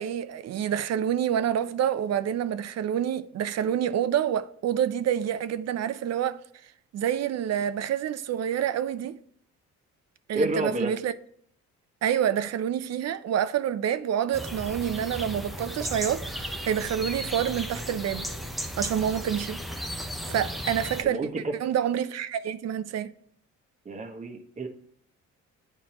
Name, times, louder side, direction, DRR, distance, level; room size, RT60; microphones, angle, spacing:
voice 1, 0.0-6.4 6.9-9.2 10.3-11.1 12.0-18.3 18.8-19.6 20.3-21.2 21.6-23.1, right 9 dB, 60° right, 0.5 m, -27 dB
voice 2, 10.3-10.9 21.0-21.5 23.8-24.7, right 2 dB, 25° right, 1.0 m, -29 dB
sound 1, 14.3-21.0, equal, ahead, 0.6 m, -35 dB
8.7 x 4.5 x 2.8 m
cardioid pair, 90°, 30 cm